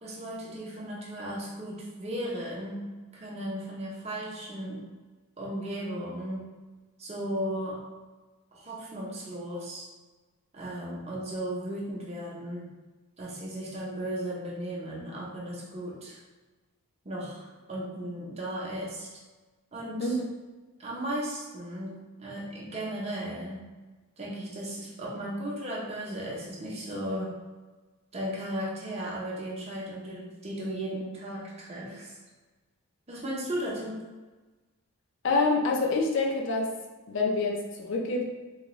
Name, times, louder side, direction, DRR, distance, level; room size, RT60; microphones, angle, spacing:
voice 1, 0.0-2.8 3.1-4.8 5.4-6.5 7.0-7.8 8.5-9.9 10.5-12.7 13.2-16.2 17.0-19.1 19.7-20.1 20.8-23.6 24.2-27.3 28.1-32.2 33.1-34.0, right 1 dB, 30° right, -4 dB, 0.7 m, -36 dB
voice 2, 35.2-36.7 37.1-38.2, left 3 dB, 55° left, -1 dB, 0.5 m, -26 dB
3.8 x 2.2 x 3.0 m, 1.3 s
head